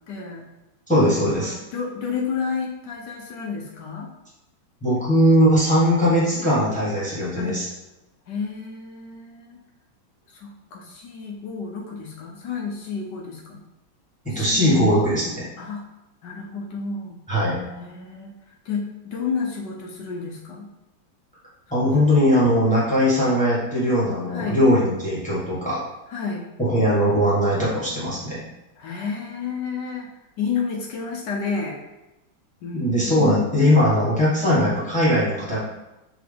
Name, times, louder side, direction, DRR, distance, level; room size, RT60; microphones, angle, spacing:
voice 1, 0.1-0.4 1.1-4.1 7.3-7.6 8.3-9.6 10.3-13.6 14.3-14.7 15.6-15.8 16.2-17.2 17.8-20.7 21.8-22.1 24.3-24.6 26.1-26.5 28.8-30.1 30.4-31.8 32.6-33.5, left 5 dB, 70° left, 0 dB, 1.1 m, -31 dB
voice 2, 0.9-1.5 4.8-7.7 14.2-15.5 17.3-17.6 21.7-25.8 26.6-28.4 32.7-35.6, equal, 5° left, -8 dB, 1.0 m, -20 dB
5.0 x 3.0 x 3.4 m, 0.96 s
omnidirectional pair, 2.2 m